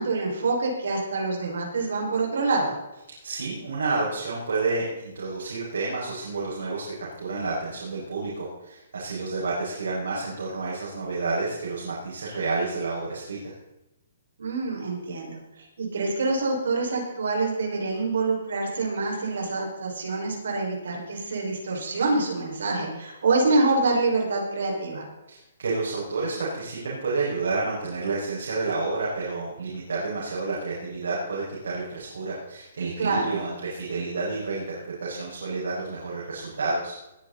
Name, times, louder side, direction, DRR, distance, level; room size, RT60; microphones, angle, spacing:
voice 1, 0.0-2.8 14.4-15.4 15.8-25.1 33.0-33.4, right 3 dB, 65° right, -1 dB, 5.5 m, -26 dB
voice 2, 3.2-13.5 25.3-36.9, right 3 dB, 90° right, -6 dB, 5.9 m, -30 dB
20.5 x 10.0 x 4.2 m, 0.92 s
hypercardioid pair, 180°, 0 cm